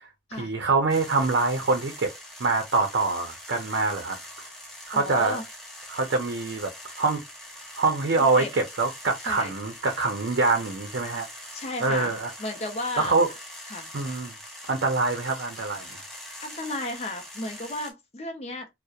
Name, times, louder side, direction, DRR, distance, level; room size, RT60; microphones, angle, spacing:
voice 1, 0.3-2.1 2.4-4.5 4.9-5.4 5.9-6.7 7.0-7.2 7.8-11.3 11.8-12.3 13.0-13.3 13.9-14.3 14.7-16.0, right 3 dB, 80° right, 0.5 m, -25 dB
sound 1, 0.9-17.9, left 1 dB, 5° left, 0.7 m, -43 dB
voice 2, 4.9-5.4 8.2-8.5 9.2-9.5 11.5-12.1 12.4-13.1 13.7-13.9 16.4-18.7, left 2 dB, 35° left, 0.5 m, -33 dB
2.7 x 2.0 x 2.3 m
head